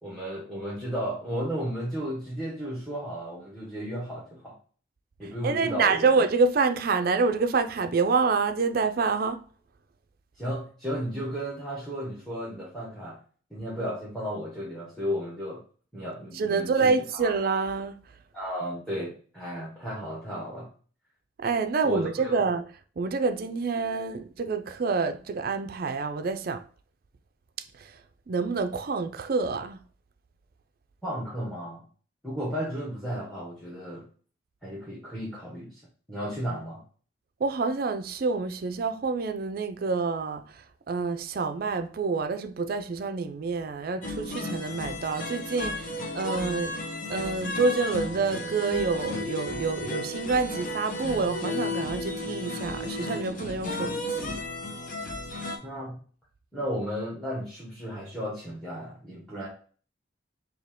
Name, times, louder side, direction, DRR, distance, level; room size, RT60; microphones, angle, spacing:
voice 1, 0.0-4.5 5.2-6.1 10.4-13.2 13.5-15.6 15.9-17.3 18.3-20.7 21.8-22.4 31.0-31.8 32.2-34.0 34.6-35.7 36.1-36.8 55.6-56.0 56.5-59.5, equal, ahead, 1.2 m, -34 dB
voice 2, 5.4-9.4 16.3-18.0 21.4-22.6 23.0-26.6 27.8-27.9 28.3-29.8 37.4-46.8 47.1-54.4, right 4 dB, 55° right, 0.4 m, -27 dB
sound 1, 44.0-55.6, left 1 dB, 45° left, 0.7 m, -34 dB
4.4 x 2.8 x 3.5 m
head